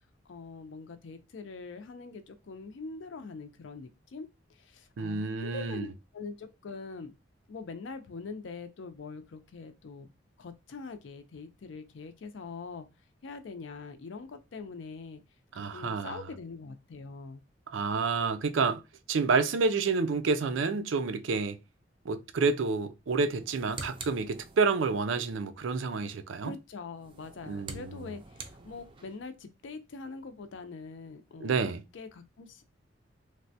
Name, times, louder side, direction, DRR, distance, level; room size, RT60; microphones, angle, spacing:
voice 1, 0.3-5.9 6.1-7.1 7.5-10.1 10.4-12.9 13.2-15.2 15.5-17.4 26.4-32.6, left 4 dB, 75° left, 0.5 m, -43 dB
voice 2, 5.0-5.9 15.6-16.2 17.7-18.8 19.1-21.6 22.1-26.5 27.5-27.9 31.4-31.8, right 4 dB, 90° right, 0.4 m, -29 dB
sound 1, 23.3-25.0 26.9-29.3, right 3 dB, 25° right, 0.4 m, -46 dB
3.2 x 2.1 x 2.7 m
head